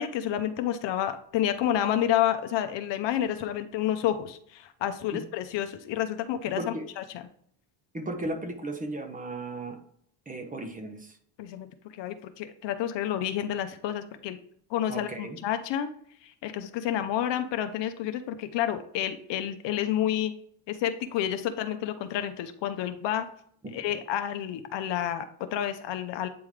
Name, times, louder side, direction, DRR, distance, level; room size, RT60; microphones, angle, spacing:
voice 1, 0.0-6.6 7.0-7.2 11.4-14.4 14.7-15.9 16.2-20.3 20.7-23.3 23.7-26.3, left 11 dB, 65° left, 9 dB, 0.7 m, -29 dB
voice 2, 6.6-6.9 7.9-9.8 10.3-11.2 14.9-15.4 23.6-23.7, right 1 dB, 15° right, 5 dB, 0.8 m, -35 dB
8.8 x 3.5 x 3.2 m, 0.63 s
cardioid pair, 110°, 47 cm